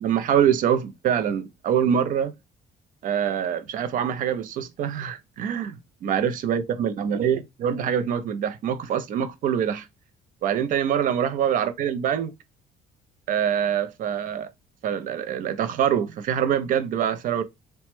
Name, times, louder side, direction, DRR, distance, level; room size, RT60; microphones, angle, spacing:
voice 1, 0.0-2.3 3.0-9.9 10.4-12.3 13.3-14.5 14.8-17.4, right 9 dB, 50° right, 0.5 m, -24 dB
3.0 x 2.1 x 2.9 m
cardioid pair, 140°, 17 cm